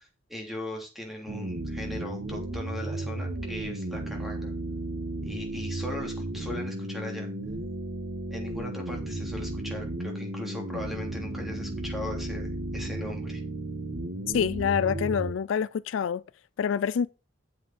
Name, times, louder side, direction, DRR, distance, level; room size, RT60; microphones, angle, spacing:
voice 1, 0.0-4.5 5.2-7.3 8.3-13.4, left 1 dB, ahead, 3.1 m, -39 dB
sound 1, 1.3-15.3, right 1 dB, 80° right, 1.6 m, -34 dB
voice 2, 14.3-16.2 16.6-17.1, left 7 dB, 70° left, 0.4 m, -26 dB
8.4 x 7.9 x 4.2 m
head